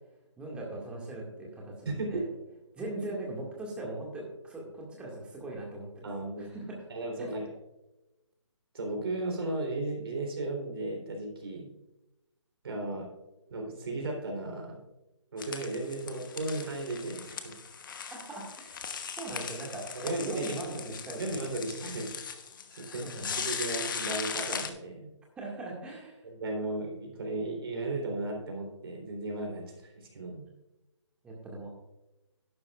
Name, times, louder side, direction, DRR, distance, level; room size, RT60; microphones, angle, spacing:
voice 1, 0.4-2.3 2.7-6.1 6.4-6.8 7.2-7.3 18.1-21.5 23.0-23.5 25.4-26.2 31.2-31.7, right 2 dB, 5° right, -2 dB, 2.0 m, -40 dB
voice 2, 1.9-2.2 6.0-6.5 6.9-7.5 8.7-11.7 12.6-13.1 13.5-14.8 15.3-17.5 19.9-20.5 21.2-22.1 22.7-23.1 23.4-25.1 26.2-30.5, right 2 dB, 55° right, 1 dB, 3.6 m, -35 dB
sound 1, 15.4-24.7, left 7 dB, 45° left, 1.1 m, -39 dB
12.0 x 11.5 x 2.5 m, 0.98 s
figure-of-eight pair, 150°, 16 cm